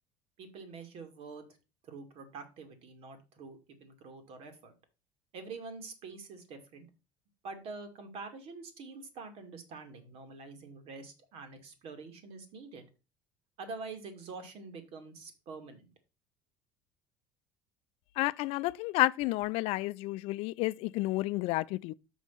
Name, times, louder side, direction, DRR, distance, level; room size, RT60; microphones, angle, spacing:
voice 1, 0.4-1.5 1.8-4.7 5.3-6.9 7.4-12.8 13.6-15.9, right 4 dB, 60° right, 2.5 m, -46 dB
voice 2, 18.2-21.9, left 19 dB, 65° left, 0.5 m, -30 dB
6.3 x 5.3 x 5.7 m
hypercardioid pair, 70°, 11 cm